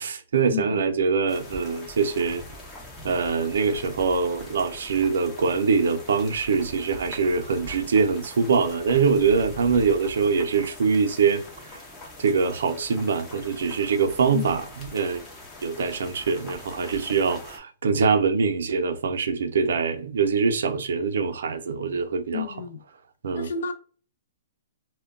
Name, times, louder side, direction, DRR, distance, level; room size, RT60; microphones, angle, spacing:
voice 1, 0.0-2.4 3.0-11.4 12.2-15.3 15.6-22.5 23.2-23.5, right 5 dB, 80° right, 0.5 m, -23 dB
voice 2, 0.5-1.1 3.4-3.5 14.3-14.6 22.3-22.8 23.3-23.7, left 6 dB, 70° left, 0.5 m, -32 dB
sound 1, 1.3-17.6, left 1 dB, 15° left, 0.6 m, -43 dB
2.2 x 2.1 x 3.5 m
hypercardioid pair, 160°, 0 cm